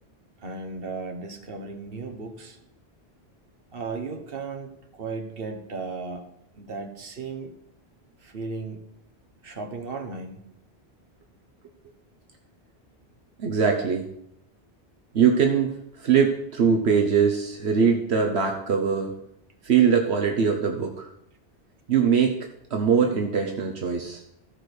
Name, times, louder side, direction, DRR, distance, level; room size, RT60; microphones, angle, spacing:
voice 1, 0.4-2.6 3.7-6.3 6.5-7.5 8.2-8.8 9.4-10.4, right 4 dB, 60° right, 4 dB, 1.5 m, -35 dB
voice 2, 13.4-14.1 15.1-19.1 19.6-21.1 21.9-22.4 22.7-24.2, right 6 dB, 75° right, 2 dB, 1.3 m, -22 dB
15.0 x 5.1 x 6.2 m, 0.77 s
omnidirectional pair, 1.1 m